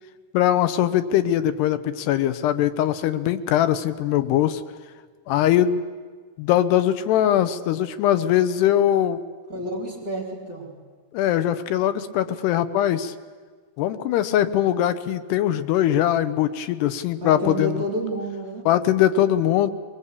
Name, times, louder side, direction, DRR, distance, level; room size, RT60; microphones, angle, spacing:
voice 1, 0.3-4.6 5.3-5.8 6.4-9.2 11.1-13.1 13.8-17.8 18.7-19.7, left 11 dB, 80° left, 11 dB, 2.9 m, -21 dB
voice 2, 9.5-10.7 17.2-18.7, equal, 20° right, -2 dB, 3.4 m, -29 dB
22.5 x 21.0 x 8.4 m, 1.5 s
omnidirectional pair, 4.8 m